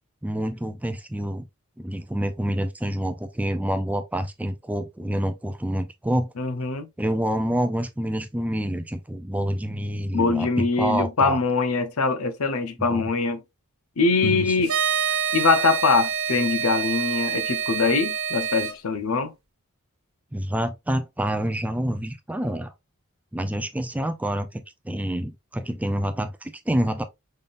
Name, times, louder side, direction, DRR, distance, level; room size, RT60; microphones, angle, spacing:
voice 1, 0.2-1.5 1.8-6.3 7.0-11.4 12.9-13.0 14.2-14.6 20.3-22.7 23.3-27.0, right 1 dB, 5° right, 0.4 m, -27 dB
voice 2, 6.4-6.9 10.1-13.4 14.0-14.7 15.3-19.3, left 4 dB, 75° left, 0.8 m, -23 dB
sound 1, 14.6-18.7, right 8 dB, 75° right, 1.0 m, -26 dB
5.5 x 3.7 x 2.4 m
head